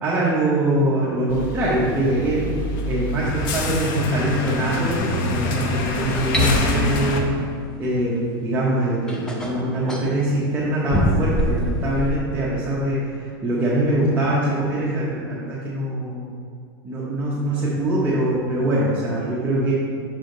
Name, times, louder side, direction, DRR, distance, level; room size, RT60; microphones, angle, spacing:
voice 1, 0.0-2.6 2.8-7.3 7.8-16.3 16.8-19.7, right 1 dB, 15° right, -8 dB, 1.0 m, -23 dB
sound 1, 1.3-7.2, left 2 dB, 55° left, 0.8 m, -25 dB
sound 2, 6.3-6.5 8.4-8.5 9.1-10.1 10.9-12.2, right 1 dB, 5° left, 0.6 m, -23 dB
6.4 x 5.0 x 3.9 m, 2.2 s
supercardioid pair, 140°, 13 cm